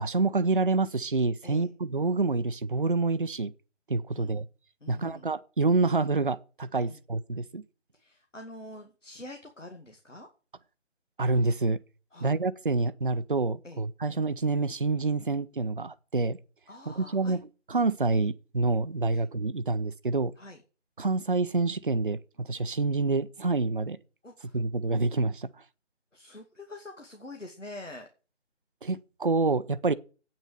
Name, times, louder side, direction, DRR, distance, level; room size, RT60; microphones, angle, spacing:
voice 1, 0.0-3.5 3.9-4.5 4.9-7.6 11.2-11.8 12.2-16.4 16.9-17.4 17.7-20.3 21.0-24.0 24.5-25.5 28.8-29.9, right 3 dB, 45° right, 0.6 m, -27 dB
voice 2, 4.1-4.4 4.8-5.3 6.8-7.0 7.9-10.3 12.1-12.3 13.6-13.8 16.7-17.4 19.1-19.3 20.4-20.6 24.2-24.6 26.1-28.1, left 2 dB, 85° left, 2.3 m, -45 dB
8.8 x 6.6 x 6.9 m
figure-of-eight pair, 160°, 36 cm